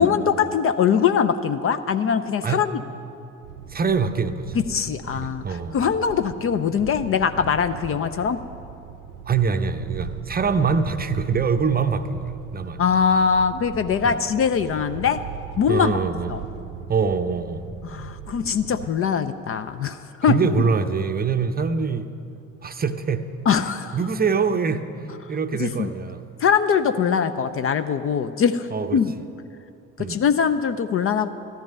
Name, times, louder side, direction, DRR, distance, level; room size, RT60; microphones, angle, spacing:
voice 1, 0.0-2.8 4.7-5.4 5.7-8.4 12.8-15.2 15.6-15.9 16.3-16.4 17.8-20.3 23.5-24.0 25.6-25.9 26.4-28.7 28.9-29.1 30.0-31.3, left 7 dB, 35° left, 10 dB, 0.6 m, -22 dB
sound 1, 3.4-18.9, right 8 dB, 65° right, 0.7 m, -39 dB
voice 2, 3.7-4.6 5.1-5.9 9.3-12.8 14.0-14.2 15.7-16.3 16.9-17.7 20.2-22.1 22.6-23.3 23.9-26.2 28.7-29.0 30.0-30.2, right 5 dB, 20° right, 9 dB, 0.7 m, -24 dB
14.0 x 13.5 x 5.4 m, 2.7 s
figure-of-eight pair, 50°, 41 cm